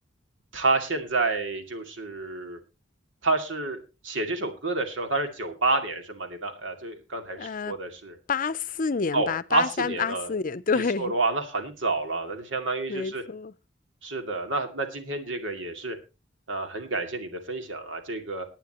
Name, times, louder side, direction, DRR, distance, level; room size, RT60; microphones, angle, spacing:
voice 1, 0.5-2.6 3.2-8.2 9.1-10.3 10.7-13.2 14.0-16.0 16.5-18.5, right 3 dB, 90° right, 2.4 m, -29 dB
voice 2, 7.4-7.8 8.3-11.1 12.9-13.5, left 5 dB, 45° left, 0.6 m, -28 dB
19.0 x 9.0 x 3.0 m
head